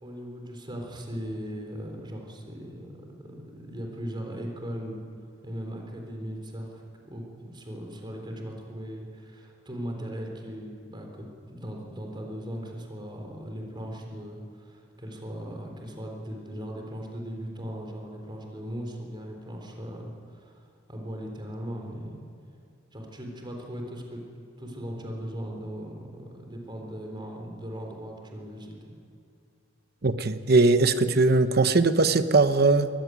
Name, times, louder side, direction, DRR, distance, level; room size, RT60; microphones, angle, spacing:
voice 1, 0.0-5.0 5.4-20.6 20.9-22.2 22.9-24.2 24.6-28.9, equal, 25° right, 1 dB, 3.8 m, -38 dB
voice 2, 30.0-32.9, right 3 dB, 55° right, 11 dB, 0.9 m, -20 dB
22.0 x 15.5 x 9.4 m, 2.5 s
head